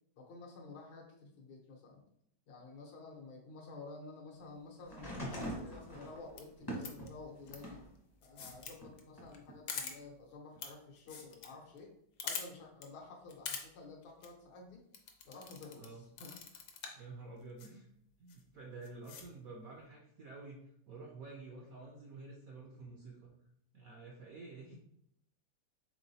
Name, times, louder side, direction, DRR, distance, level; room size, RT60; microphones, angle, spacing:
voice 1, 0.2-2.0 2.5-7.8 8.2-11.9 12.2-14.8 15.2-16.4, left 3 dB, 85° left, 0 dB, 1.8 m, -51 dB
sound 1, 4.9-7.9 8.4-9.5 10.6-10.7, equal, 25° left, 0.5 m, -44 dB
sound 2, 6.3-6.4 6.8-7.1 7.5-7.6 8.2-8.7 9.0-9.1 9.3-9.4 9.7-9.9 10.6-10.7 11.0-11.5 11.8-11.9 12.2-12.4 12.8-12.9 13.3-13.6 14.0-14.3 14.9-15.9 16.2-17.0 17.6-17.7 18.3-18.4 18.8-19.2, left 6 dB, 70° left, 1.3 m, -43 dB
voice 2, 16.9-17.9 18.2-23.3 23.7-24.7, right 3 dB, 75° right, -1 dB, 0.8 m, -50 dB
4.8 x 3.7 x 2.7 m, 0.73 s
omnidirectional pair, 2.2 m